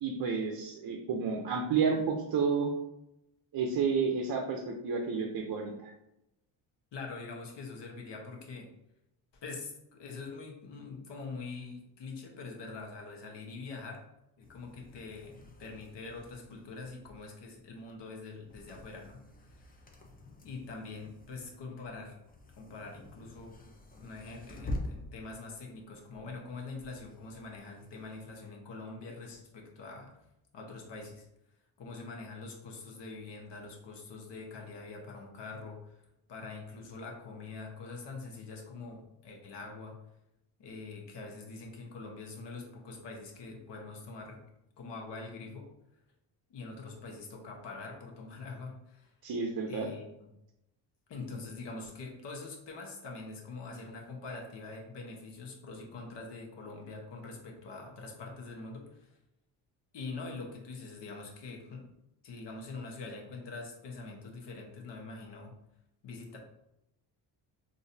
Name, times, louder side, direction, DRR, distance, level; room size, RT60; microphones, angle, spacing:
voice 1, 0.0-2.7 3.5-5.9 49.2-49.9, right 5 dB, 50° right, 2 dB, 0.6 m, -31 dB
voice 2, 6.9-8.7 9.3-14.0 14.4-19.8 20.4-22.2 22.5-23.6 24.0-30.1 30.5-31.3 31.8-36.0 36.3-40.0 40.6-44.4 44.8-45.7 46.5-49.1 49.6-50.3 51.1-59.2 59.9-61.8 62.2-65.6 66.0-66.4, left 3 dB, 60° left, 1 dB, 1.1 m, -44 dB
sound 1, 14.4-28.3, left 1 dB, 20° left, 0.6 m, -47 dB
3.9 x 2.7 x 2.6 m, 0.86 s
supercardioid pair, 70°, 48 cm